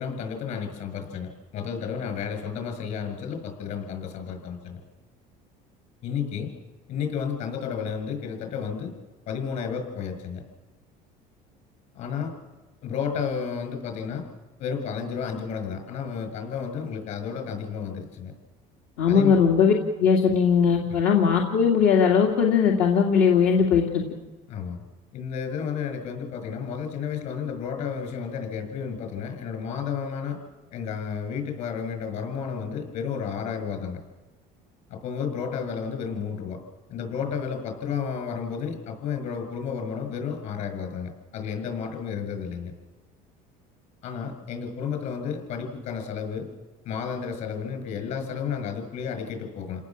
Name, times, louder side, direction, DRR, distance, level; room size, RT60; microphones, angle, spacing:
voice 1, 0.0-4.8 6.0-6.5 6.9-8.9 9.2-10.4 11.9-12.3 12.8-14.2 14.6-18.3 19.1-19.4 20.9-21.0 24.5-24.8 25.1-30.4 30.7-34.0 34.9-36.6 36.9-42.7 44.0-46.5 46.8-49.9, left 6 dB, 50° left, 5 dB, 6.8 m, -32 dB
voice 2, 19.0-19.7 20.0-24.0, left 6 dB, 75° left, -1 dB, 2.7 m, -19 dB
29.5 x 18.5 x 7.5 m, 1.3 s
cardioid pair, 175°, 16 cm